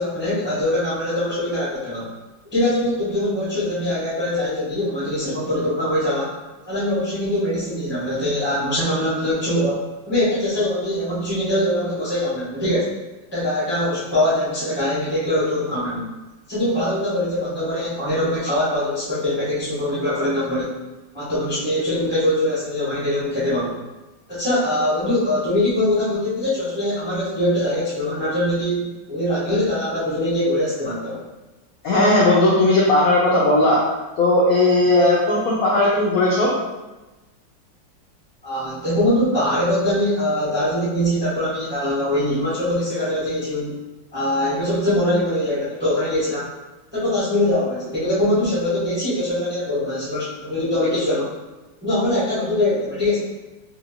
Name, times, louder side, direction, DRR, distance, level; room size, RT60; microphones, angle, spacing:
voice 1, 0.0-2.1 2.5-6.3 6.7-12.9 13.3-16.1 16.5-20.7 21.1-23.7 24.3-31.2 38.4-43.7 44.1-46.4 46.9-51.3 51.8-53.2, left 1 dB, 10° right, -10 dB, 0.5 m, -22 dB
voice 2, 31.8-33.8 34.2-36.5, left 2 dB, 75° left, -5 dB, 0.8 m, -17 dB
2.8 x 2.7 x 2.8 m, 1.1 s
omnidirectional pair, 2.1 m